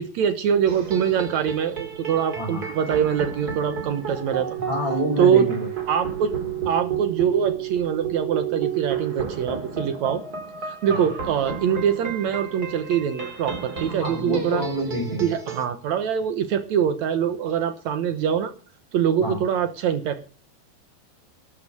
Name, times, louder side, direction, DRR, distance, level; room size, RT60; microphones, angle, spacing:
voice 1, 0.0-4.6 5.2-5.5 5.9-6.4 6.6-10.2 10.6-14.6 15.2-18.5 18.9-20.2, right 8 dB, 75° right, 9 dB, 1.7 m, -23 dB
sound 1, 0.7-15.6, right 7 dB, 30° right, 2.1 m, -32 dB
voice 2, 4.6-5.7 10.9-11.0 13.9-15.3 19.2-19.4, equal, 15° left, -2 dB, 4.7 m, -27 dB
12.5 x 9.2 x 6.6 m, 0.38 s
omnidirectional pair, 4.4 m